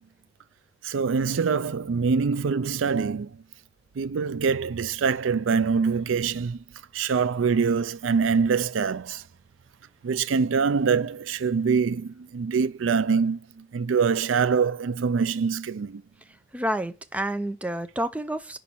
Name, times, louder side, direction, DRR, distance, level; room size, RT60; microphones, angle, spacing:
voice 1, 0.8-3.4 4.0-6.6 6.9-9.2 10.0-16.0, right 5 dB, 80° right, 0.4 m, -24 dB
voice 2, 16.5-18.6, right 1 dB, 5° right, 0.4 m, -29 dB
5.5 x 5.2 x 6.0 m
head